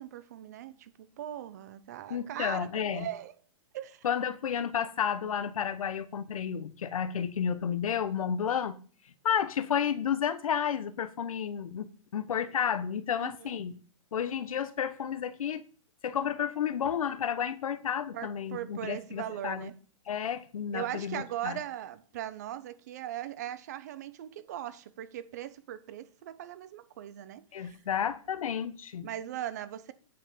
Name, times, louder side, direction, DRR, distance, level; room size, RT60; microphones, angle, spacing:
voice 1, 0.0-3.3 3.7-4.1 13.2-13.5 18.1-19.8 20.7-27.8 29.0-29.9, right 12 dB, 30° right, 0.6 m, -39 dB
voice 2, 2.1-3.1 4.0-8.7 9.2-11.9 12.1-13.7 14.1-15.6 16.0-19.7 20.1-21.6 27.5-29.1, left 8 dB, 80° left, 1.1 m, -31 dB
9.3 x 5.8 x 6.7 m
hypercardioid pair, 175°, 17 cm